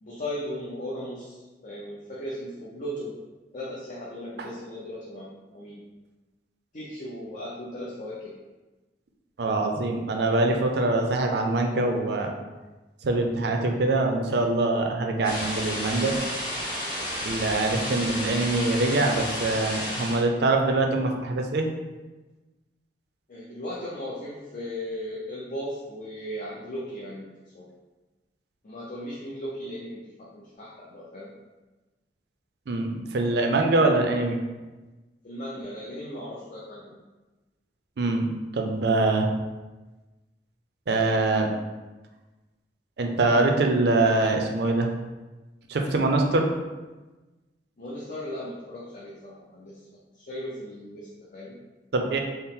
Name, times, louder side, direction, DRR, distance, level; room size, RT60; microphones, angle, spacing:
voice 1, 0.0-3.1 3.5-5.8 6.7-8.3 23.3-27.7 28.6-31.3 35.2-37.0 47.8-49.8 50.1-51.6, equal, 45° left, -5 dB, 0.5 m, -37 dB
voice 2, 9.4-12.3 13.0-16.2 17.2-21.7 32.7-34.4 38.0-38.3 38.5-39.3 40.9-41.5 43.0-44.9 45.7-46.5 51.9-52.2, right 2 dB, 65° right, 3 dB, 0.5 m, -24 dB
sound 1, 15.2-20.2, equal, 25° left, 0.9 m, -32 dB
4.2 x 2.0 x 3.6 m, 1.2 s
head